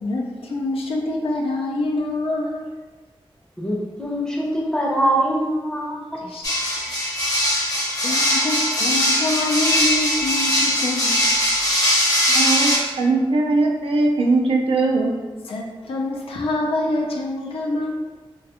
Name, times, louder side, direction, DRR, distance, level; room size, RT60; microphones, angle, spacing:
voice 1, 0.0-2.7 6.2-6.8 7.9-11.3 15.5-17.9, left 2 dB, 85° left, -1 dB, 0.4 m, -26 dB
voice 2, 3.6-6.0, right 1 dB, 5° left, -3 dB, 0.5 m, -23 dB
sound 1, 6.4-12.8, equal, 40° left, 0.8 m, -20 dB
voice 3, 12.3-15.1, right 3 dB, 90° right, 1 dB, 0.4 m, -20 dB
2.3 x 2.2 x 2.8 m, 1.3 s
wide cardioid pair, 80°, 9 cm